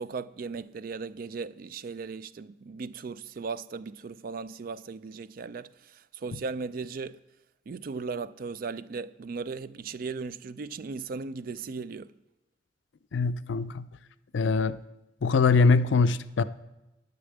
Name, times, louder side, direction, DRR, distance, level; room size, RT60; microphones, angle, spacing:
voice 1, 0.0-5.7 6.1-7.2 7.7-12.1, right 4 dB, 50° right, 0.4 m, -37 dB
voice 2, 13.1-13.9 14.3-14.8 15.2-16.4, left 4 dB, 70° left, 0.5 m, -23 dB
10.5 x 6.8 x 7.8 m
head